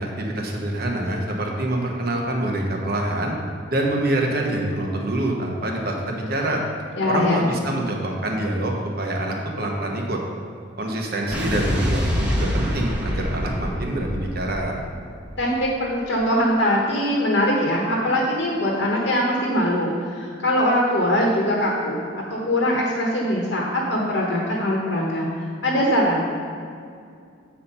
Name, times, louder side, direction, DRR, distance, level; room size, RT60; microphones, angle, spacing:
voice 1, 0.0-3.3 3.7-6.6 7.1-10.2 10.8-14.8, right 1 dB, 50° right, 0 dB, 1.0 m, -25 dB
voice 2, 7.0-7.5 15.4-25.3 25.6-26.2, equal, 55° left, -3 dB, 1.1 m, -22 dB
Explosion, 11.3-15.6, equal, 5° right, 1.1 m, -26 dB
8.4 x 4.4 x 5.4 m, 2.3 s
head